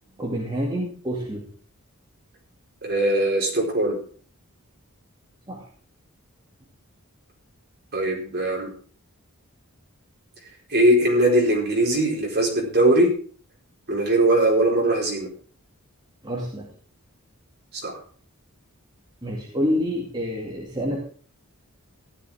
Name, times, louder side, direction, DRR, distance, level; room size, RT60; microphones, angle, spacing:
voice 1, 0.2-1.5 5.5-5.7 16.2-16.7 19.2-21.0, equal, 20° right, -2 dB, 2.4 m, -27 dB
voice 2, 2.8-4.0 7.9-8.7 10.7-13.1 13.9-15.3 17.7-18.0, right 1 dB, 45° right, -1 dB, 4.3 m, -20 dB
15.0 x 11.5 x 3.6 m, 0.43 s
head